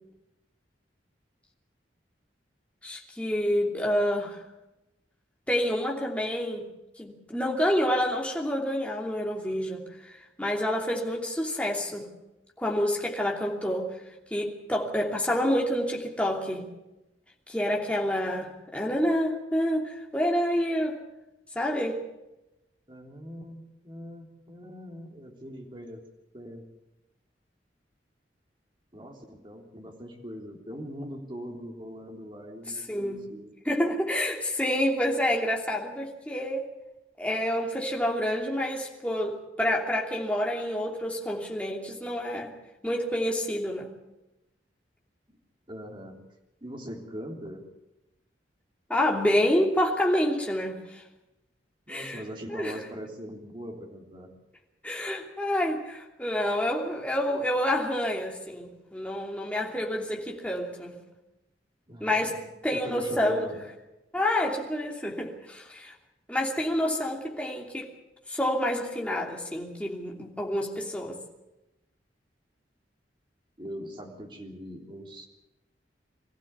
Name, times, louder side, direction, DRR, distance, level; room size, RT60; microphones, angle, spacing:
voice 1, 2.8-4.4 5.5-6.7 7.0-9.9 10.4-12.1 12.6-13.9 14.3-16.7 17.5-21.0 21.5-22.0 32.9-33.2 33.6-36.7 37.2-42.5 42.8-43.9 48.9-51.0 51.9-52.2 52.5-52.7 54.8-61.0 62.0-62.4 62.6-63.4 64.1-65.9 66.3-67.9 68.3-71.2, left 1 dB, 5° left, -1 dB, 2.9 m, -28 dB
voice 2, 22.9-26.0 26.3-26.7 28.9-33.5 45.7-46.2 46.6-47.7 51.9-54.3 61.9-63.7 73.6-75.3, equal, 30° right, 1 dB, 3.5 m, -41 dB
23.0 x 15.0 x 8.2 m, 0.97 s
head